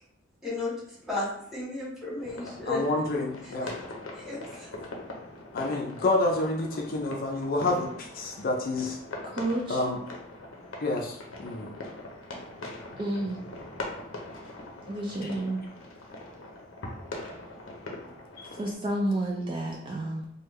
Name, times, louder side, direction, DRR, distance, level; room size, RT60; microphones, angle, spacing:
voice 1, 0.4-0.7 1.1-3.0 3.4-3.5 4.2-4.7, left 2 dB, ahead, -8 dB, 1.4 m, -33 dB
sound 1, 2.2-18.7, left 2 dB, 90° left, 0.7 m, -42 dB
voice 2, 2.7-3.7 5.5-7.9 8.2-9.0 9.7-10.0 10.8-11.7 15.2-15.3 18.4-18.5, left 2 dB, 50° left, -1 dB, 0.4 m, -28 dB
voice 3, 9.2-9.8 13.0-13.4 14.9-15.6 18.6-20.3, right 1 dB, 25° right, -1 dB, 0.4 m, -30 dB
3.3 x 2.2 x 3.1 m, 0.72 s
head